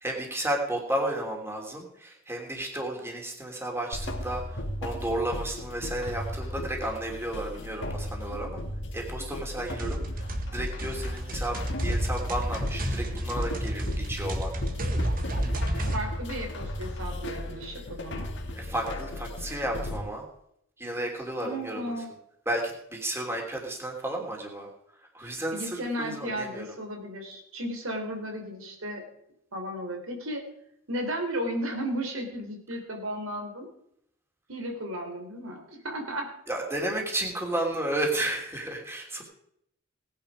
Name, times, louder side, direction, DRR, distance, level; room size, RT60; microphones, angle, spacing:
voice 1, 0.0-8.6 8.9-10.3 10.5-14.5 18.5-20.2 20.8-21.9 22.5-24.7 25.1-26.7 36.5-39.2, right 1 dB, 10° right, 0 dB, 3.0 m, -32 dB
sound 1, 3.9-20.0, left 1 dB, 60° left, 2.0 m, -36 dB
sound 2, 9.7-16.0, right 1 dB, 45° right, 1.7 m, -31 dB
voice 2, 15.8-18.3 21.4-22.1 25.2-29.0 29.5-30.4 30.9-33.7 34.5-36.3, equal, 85° right, 3 dB, 3.6 m, -34 dB
18.5 x 10.0 x 5.0 m, 0.73 s
head